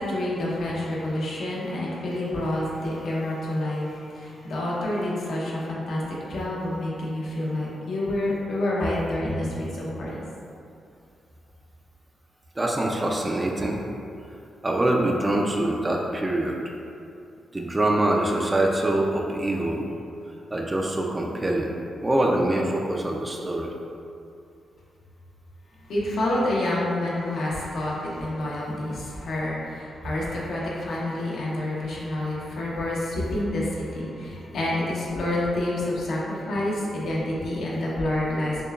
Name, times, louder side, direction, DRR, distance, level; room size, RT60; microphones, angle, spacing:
voice 1, 0.0-6.0 6.3-10.2 25.9-38.6, left 1 dB, 70° left, -5 dB, 0.8 m, -28 dB
voice 2, 12.6-13.8 14.6-16.6 17.5-19.8 20.5-21.7 22.0-23.7, right 1 dB, 20° right, 0 dB, 0.4 m, -24 dB
6.6 x 2.2 x 2.4 m, 2.5 s
cardioid pair, 120°, 0 cm